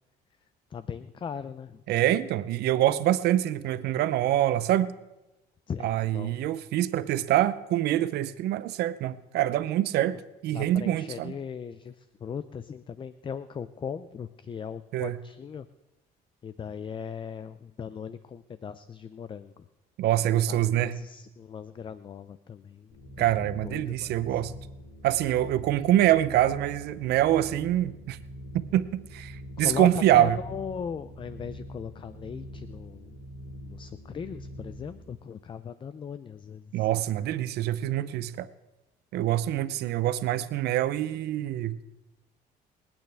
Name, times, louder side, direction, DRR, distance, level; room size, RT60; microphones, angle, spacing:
voice 1, 0.7-1.8 5.7-6.4 10.5-15.7 16.4-19.7 20.2-23.3 23.6-24.4 29.6-33.1 33.6-36.9, left 7 dB, 30° left, 13 dB, 0.5 m, -38 dB
voice 2, 1.9-4.9 5.8-11.3 14.9-15.2 20.0-21.0 23.2-24.5 25.0-28.2 28.7-30.4 36.7-38.5 39.1-41.8, right 13 dB, 75° right, 15 dB, 0.7 m, -25 dB
sound 1, 22.9-35.0, equal, 70° left, 3.7 m, -44 dB
26.0 x 9.0 x 3.4 m, 1.0 s
cardioid pair, 110°, 17 cm